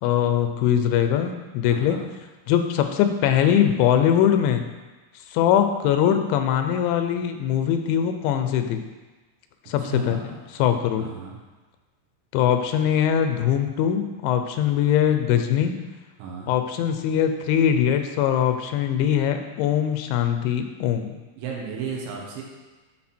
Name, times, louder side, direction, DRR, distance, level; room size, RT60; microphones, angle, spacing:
voice 1, 0.0-2.0 2.5-4.7 5.3-8.8 9.7-11.1 12.3-15.8 16.5-21.2, left 9 dB, 85° left, 7 dB, 3.0 m, -22 dB
voice 2, 1.7-2.1 9.8-10.2 11.0-11.4 16.2-16.5 21.4-22.4, right 6 dB, 85° right, -2 dB, 3.7 m, -34 dB
12.0 x 4.1 x 4.3 m, 1.2 s
omnidirectional pair, 5.2 m